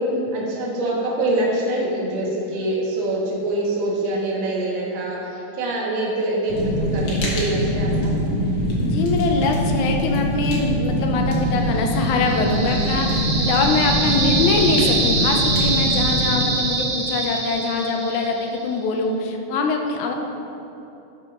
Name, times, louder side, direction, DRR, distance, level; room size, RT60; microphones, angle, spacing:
voice 1, 0.3-8.1 12.6-12.8, right 1 dB, 45° right, -4 dB, 1.7 m, -24 dB
Fire, 6.5-16.4, equal, 55° left, 1.7 m, -23 dB
voice 2, 8.8-20.1, left 3 dB, 75° left, 2 dB, 1.8 m, -23 dB
sound 1, 11.6-18.6, right 3 dB, 75° right, 2.6 m, -25 dB
12.5 x 5.5 x 3.8 m, 2.9 s
omnidirectional pair, 3.9 m